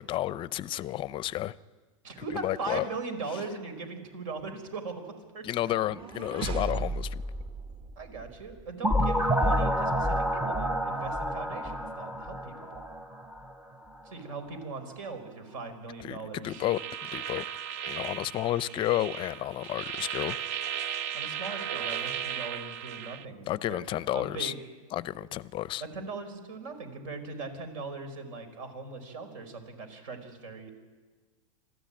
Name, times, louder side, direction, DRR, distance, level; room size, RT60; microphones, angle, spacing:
voice 1, 0.0-1.5 2.3-2.9 5.4-7.2 16.0-17.5 17.8-20.4 23.5-24.5 24.9-25.8, left 14 dB, 30° left, 18 dB, 0.6 m, -31 dB
voice 2, 2.0-5.5 8.0-12.8 14.0-16.6 21.1-24.6 25.8-30.7, right 4 dB, 70° right, 8 dB, 4.9 m, -40 dB
sound 1, 5.6-8.7, right 2 dB, 30° right, 1.2 m, -36 dB
sound 2, 8.8-13.5, equal, 5° right, 0.7 m, -28 dB
sound 3, 16.5-23.2, right 9 dB, 55° right, 0.8 m, -36 dB
26.5 x 14.5 x 8.9 m, 1.4 s
supercardioid pair, 135°, 18 cm